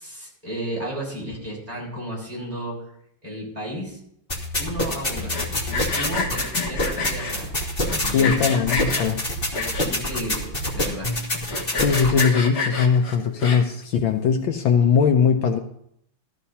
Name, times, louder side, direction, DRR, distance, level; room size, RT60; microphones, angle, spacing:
voice 1, 0.0-2.8 3.2-4.0 4.6-7.5 8.0-8.4 9.5-11.1 14.8-14.9, equal, 15° right, -5 dB, 6.1 m, -33 dB
sound 1, 4.3-12.3, left 1 dB, 25° left, 2.6 m, -27 dB
Sawing, 5.2-7.3 7.9-9.1 9.5-10.1 10.6-10.7 10.9-11.0 11.3-13.8, left 4 dB, 50° left, 2.0 m, -29 dB
voice 2, 8.1-9.2 11.7-15.6, left 6 dB, 70° left, 4 dB, 1.5 m, -20 dB
15.5 x 13.5 x 2.8 m, 0.72 s
omnidirectional pair, 2.3 m